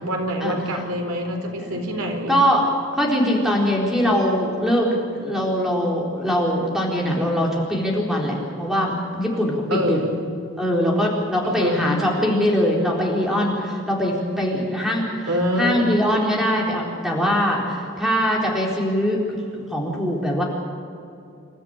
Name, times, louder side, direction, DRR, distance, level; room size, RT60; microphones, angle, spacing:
voice 1, 0.0-2.4 9.7-10.2 11.4-11.8 15.3-15.9, equal, 85° right, 3 dB, 4.0 m, -25 dB
voice 2, 2.3-2.6 3.0-10.0 10.6-15.3 15.6-19.2 19.7-20.4, equal, ahead, -2 dB, 4.1 m, -22 dB
28.0 x 13.5 x 8.9 m, 2.6 s
head